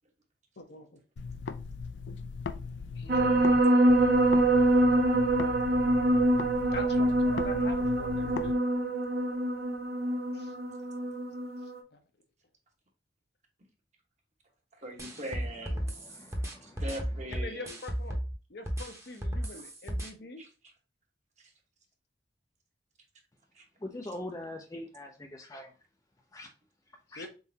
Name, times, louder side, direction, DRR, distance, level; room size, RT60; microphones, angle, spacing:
voice 1, 0.6-1.0 3.0-3.6 6.7-8.6 10.3-10.5 11.9-12.0 17.3-18.2 18.5-20.4 27.1-27.3, left 3 dB, 60° left, 5 dB, 0.8 m, -44 dB
sound 1, 1.2-3.6 3.9-8.5, left 5 dB, 80° left, 0.4 m, -39 dB
sound 2, 3.1-11.8, right 1 dB, 60° right, 0.6 m, -25 dB
voice 2, 14.7-15.8 16.6-17.8 19.4-19.6 20.4-20.5 21.4-21.5 23.5-23.6, right 1 dB, 40° right, 2 dB, 1.1 m, -41 dB
sound 3, 15.0-18.3 18.7-20.1, equal, 15° right, 0.9 m, -34 dB
voice 3, 15.8-16.8 23.8-25.7 26.3-26.5 27.1-27.3, left 1 dB, 20° left, 3 dB, 0.5 m, -43 dB
4.1 x 3.7 x 2.7 m, 0.33 s
head